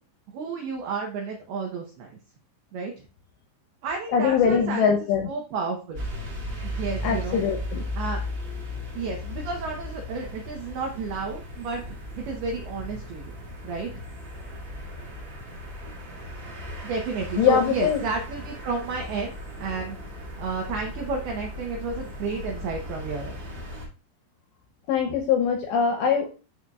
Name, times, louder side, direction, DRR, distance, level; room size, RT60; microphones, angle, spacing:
voice 1, 0.3-2.2 2.7-2.9 3.8-4.9 5.3-6.0 6.6-7.4 8.0-8.2 8.9-13.3 13.6-13.9 16.8-19.3 19.6-20.1 20.4-23.4, right 4 dB, 85° right, 1 dB, 2.2 m, -31 dB
voice 2, 4.1-5.3 7.0-7.8 17.4-18.0 24.9-26.3, left 7 dB, 80° left, 3 dB, 2.6 m, -22 dB
sound 1, 5.9-23.8, left 1 dB, 50° right, 1.4 m, -36 dB
13.0 x 4.4 x 2.4 m, 0.33 s
omnidirectional pair, 6.0 m